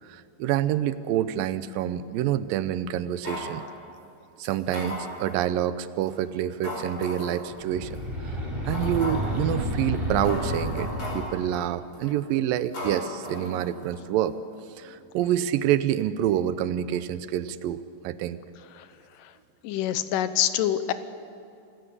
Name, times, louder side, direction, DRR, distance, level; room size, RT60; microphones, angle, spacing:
voice 1, 0.1-3.7 4.4-8.0 8.7-10.9 11.1-14.4 14.8-17.8 18.0-18.4, right 11 dB, 85° right, 14 dB, 2.5 m, -27 dB
sound 1, 3.2-3.6 4.4-5.4 6.0-6.1 6.6-7.4 7.9-8.0 8.7-9.4 10.0-10.1 10.2-11.4 11.9-12.2 12.7-14.0 14.3-14.4, left 1 dB, 40° left, 5.7 m, -36 dB
sound 2, 7.6-11.5, equal, 10° right, 4.0 m, -30 dB
voice 2, 19.6-20.9, left 11 dB, 80° left, 12 dB, 2.3 m, -25 dB
26.5 x 16.5 x 8.5 m, 2.6 s
omnidirectional pair, 3.9 m